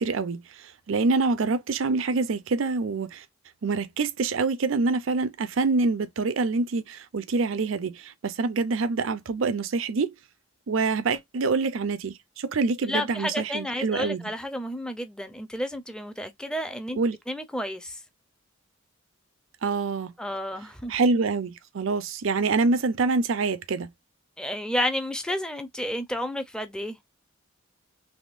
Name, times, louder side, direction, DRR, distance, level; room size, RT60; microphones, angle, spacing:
voice 1, 0.0-3.2 3.6-10.1 10.7-14.2 17.0-17.2 19.6-20.1 20.9-23.9, right 4 dB, 70° right, 0.5 m, -26 dB
voice 2, 12.9-17.0 17.3-18.0 20.2-20.9 24.4-27.0, left 1 dB, 5° left, 0.5 m, -31 dB
3.5 x 3.0 x 2.5 m
head